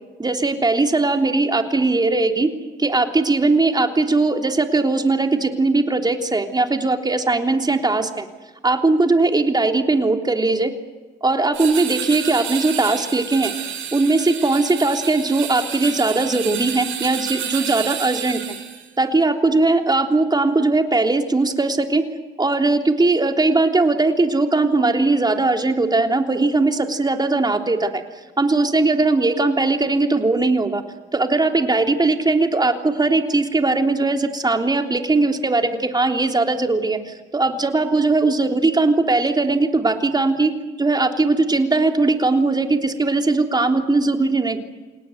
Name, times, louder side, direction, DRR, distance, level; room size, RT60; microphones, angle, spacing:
voice 1, 0.2-2.5 2.8-8.3 8.6-10.7 11.2-13.5 13.9-18.4 19.0-22.0 22.4-28.0 28.4-30.8 31.1-40.5 40.8-44.6, right 3 dB, 20° right, 4 dB, 3.4 m, -19 dB
sound 1, 11.5-18.8, right 9 dB, 85° right, 7.6 m, -30 dB
28.5 x 18.5 x 9.4 m, 1.3 s
cardioid pair, 90°, 20 cm